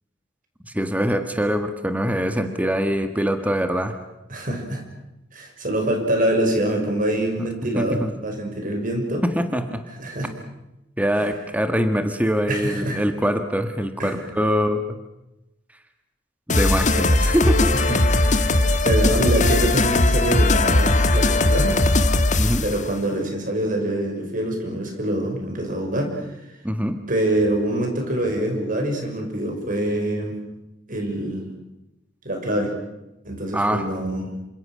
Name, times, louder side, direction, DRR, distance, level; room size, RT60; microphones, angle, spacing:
voice 1, 0.6-4.0 7.4-8.1 9.2-9.8 11.0-15.0 16.5-17.7 22.4-22.6 26.6-27.0 33.5-33.8, equal, 10° right, 7 dB, 1.5 m, -23 dB
voice 2, 4.3-4.8 5.3-9.2 10.0-10.3 11.2-11.3 12.5-13.0 14.0-14.2 17.7-18.0 18.3-21.9 22.6-26.2 27.1-30.4 30.9-31.5 32.2-32.7 33.2-34.3, right 1 dB, 45° right, 3 dB, 6.2 m, -25 dB
sound 1, 16.5-22.8, left 2 dB, 40° left, 1.5 m, -19 dB
27.5 x 25.5 x 6.4 m, 0.92 s
head